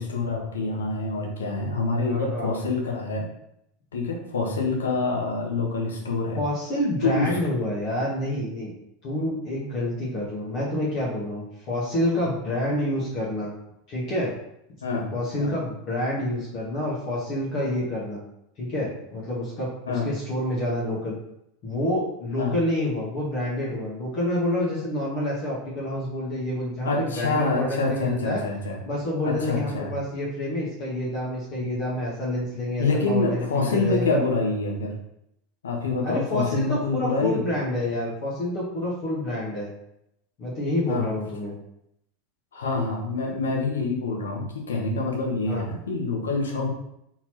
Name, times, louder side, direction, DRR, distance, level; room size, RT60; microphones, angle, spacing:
voice 1, 0.0-3.3 3.9-6.4 7.0-7.4 14.8-15.1 15.4-15.5 19.9-20.1 22.4-22.5 26.8-28.8 29.2-29.9 32.8-34.9 35.6-37.4 40.9-41.1 42.5-46.7, left 3 dB, 75° left, 0 dB, 1.1 m, -26 dB
voice 2, 2.0-2.5 6.4-8.7 9.0-13.5 13.9-14.3 15.1-18.2 18.6-21.1 21.6-28.4 28.8-34.2 36.0-39.7 40.4-41.5 45.5-45.7, left 1 dB, 45° left, -5 dB, 1.4 m, -28 dB
4.3 x 3.9 x 3.0 m, 0.78 s
figure-of-eight pair, 80°, 0 cm